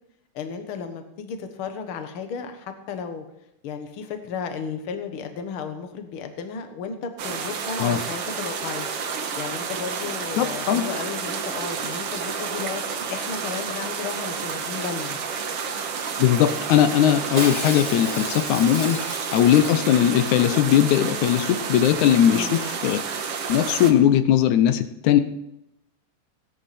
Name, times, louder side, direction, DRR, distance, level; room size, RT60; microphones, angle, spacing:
voice 1, 0.3-3.2 3.6-8.9 9.4-12.8 13.1-15.2 22.3-22.6, left 6 dB, 55° left, 7 dB, 1.7 m, -34 dB
sound 1, 7.2-23.9, right 6 dB, 60° right, 1.9 m, -30 dB
voice 2, 10.4-10.8 16.2-19.0 19.3-23.0 23.5-25.2, left 10 dB, 75° left, 10 dB, 2.1 m, -19 dB
Shatter, 17.4-20.1 20.4-20.5 20.7-21.1 21.3-21.4, right 1 dB, 15° right, 2.1 m, -33 dB
17.0 x 11.0 x 4.3 m, 0.86 s
omnidirectional pair, 3.7 m